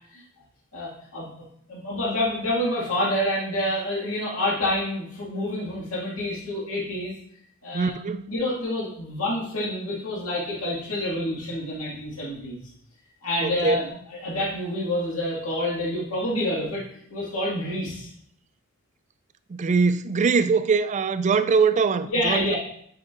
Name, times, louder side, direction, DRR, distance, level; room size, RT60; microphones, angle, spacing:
voice 1, 0.7-1.3 1.7-7.1 7.6-7.9 8.3-12.7 13.2-16.8 17.1-18.1 22.1-22.6, left 1 dB, 75° left, 2.1 m, -28 dB
voice 2, 7.7-8.3 13.4-13.8 19.5-22.6, right 5 dB, 35° right, 0.3 m, -22 dB
9.6 x 5.2 x 2.6 m
head